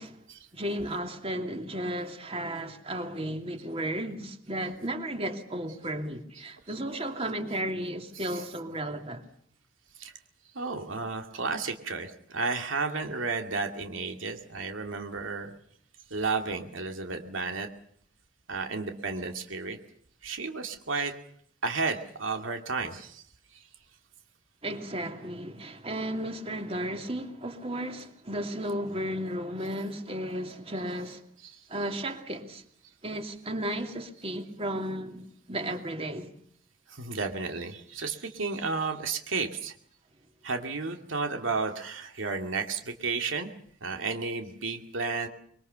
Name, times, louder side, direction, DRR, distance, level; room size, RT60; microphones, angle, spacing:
voice 1, 0.5-9.2 24.6-31.2 31.7-32.6 33.0-36.3, right 1 dB, 30° right, 2.7 m, -34 dB
voice 2, 10.5-15.5 16.1-17.7 18.5-19.8 20.2-21.1 21.6-23.2 31.4-31.6 36.9-39.7 40.4-43.5 43.8-45.3, right 4 dB, 75° right, 2.4 m, -32 dB
25.0 x 23.5 x 6.8 m
head